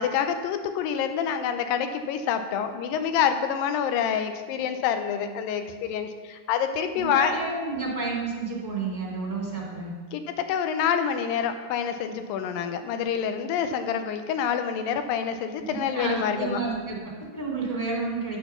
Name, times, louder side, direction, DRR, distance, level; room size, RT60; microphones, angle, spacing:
voice 1, 0.0-7.4 10.1-16.6, left 8 dB, 85° left, 8 dB, 2.4 m, -27 dB
voice 2, 6.9-9.9 15.7-18.4, right 3 dB, 5° left, -5 dB, 1.9 m, -30 dB
10.0 x 6.2 x 5.7 m, 1.5 s
omnidirectional pair, 3.9 m